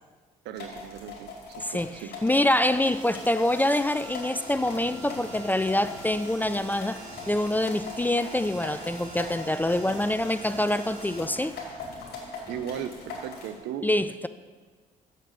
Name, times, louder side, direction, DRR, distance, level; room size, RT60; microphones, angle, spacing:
voice 1, 0.4-2.2 12.5-13.9, right 9 dB, 70° right, 11 dB, 0.6 m, -37 dB
sound 1, 0.6-13.6, left 3 dB, 60° left, 2.5 m, -41 dB
voice 2, 1.6-2.0 2.2-11.6 13.8-14.3, left 1 dB, 10° left, 13 dB, 0.4 m, -25 dB
sound 2, 2.4-12.3, right 2 dB, 50° right, 3.2 m, -45 dB
sound 3, 4.5-13.2, left 2 dB, 25° left, 2.1 m, -50 dB
6.7 x 6.6 x 6.5 m, 1.4 s
hypercardioid pair, 50°, 19 cm